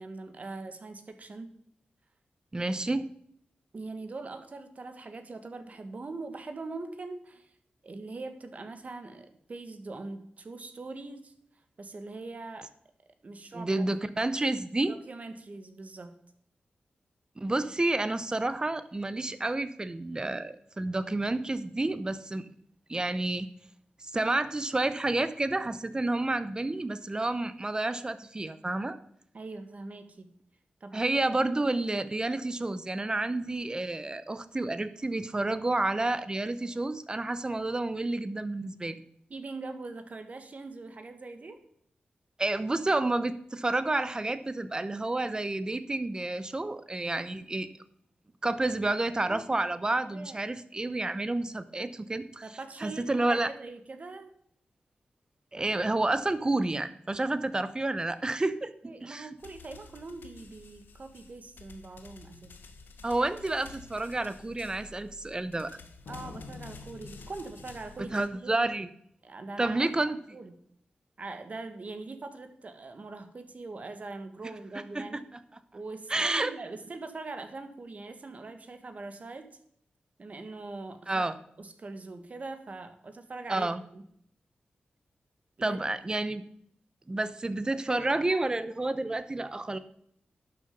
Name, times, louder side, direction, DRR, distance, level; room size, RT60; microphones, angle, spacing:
voice 1, 0.0-1.5 3.7-7.5 7.8-11.3 11.8-12.7 13.2-13.9 14.8-16.2 29.3-30.3 30.8-31.4 39.3-41.6 49.1-49.4 49.8-50.4 52.4-54.3 58.8-62.6 66.1-68.5 69.2-70.5 71.2-75.3 75.7-79.5 80.2-81.3 81.6-83.7 83.9-84.0 85.6-85.8, right 3 dB, 45° right, 8 dB, 1.4 m, -42 dB
voice 2, 2.5-3.1 13.5-15.0 17.4-22.5 22.9-23.5 24.1-29.0 30.9-39.0 42.4-47.7 48.4-52.4 52.8-53.5 55.5-58.7 59.0-59.3 63.0-65.8 68.1-68.9 69.6-70.2 74.9-75.2 76.1-76.5 81.1-81.4 83.5-83.8 85.6-86.4 87.1-89.8, right 2 dB, 25° right, 13 dB, 0.8 m, -30 dB
sound 1, 59.4-68.3, left 4 dB, 85° left, 1.1 m, -49 dB
11.5 x 6.7 x 5.3 m, 0.68 s
wide cardioid pair, 95°, 3 cm